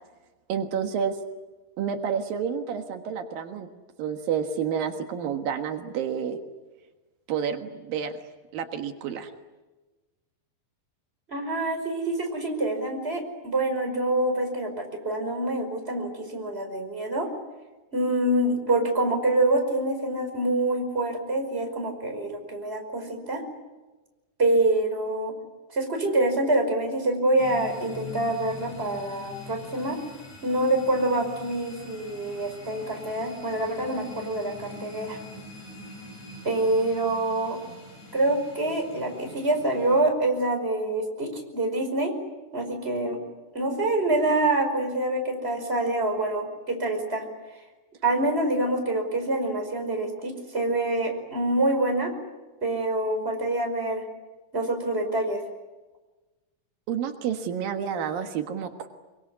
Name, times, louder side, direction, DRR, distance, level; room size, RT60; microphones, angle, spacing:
voice 1, 0.5-1.2 1.8-3.7 4.0-6.4 7.3-8.1 8.5-9.3 56.9-58.9, right 7 dB, 85° right, 5 dB, 3.3 m, -29 dB
voice 2, 11.3-17.3 17.9-23.4 24.4-25.3 25.7-30.0 30.4-35.2 36.4-37.6 38.1-42.1 42.5-43.2 43.5-47.2 48.0-52.1 52.6-54.0 54.5-55.4, right 2 dB, 15° right, 3 dB, 5.3 m, -26 dB
sound 1, 27.4-40.0, left 2 dB, 55° left, 8.3 m, -44 dB
25.5 x 24.0 x 9.7 m, 1.2 s
omnidirectional pair, 4.0 m